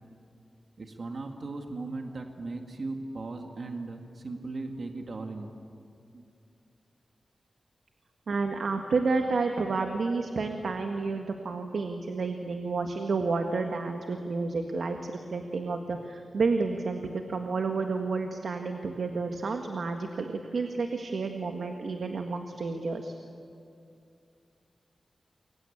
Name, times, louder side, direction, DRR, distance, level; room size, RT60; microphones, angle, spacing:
voice 1, 0.8-5.5 6.1-6.3, right 3 dB, 55° right, 3 dB, 2.0 m, -37 dB
voice 2, 8.3-23.1, right 4 dB, 75° right, 4 dB, 1.7 m, -30 dB
28.5 x 23.5 x 8.7 m, 2.5 s
wide cardioid pair, 130°, 0 cm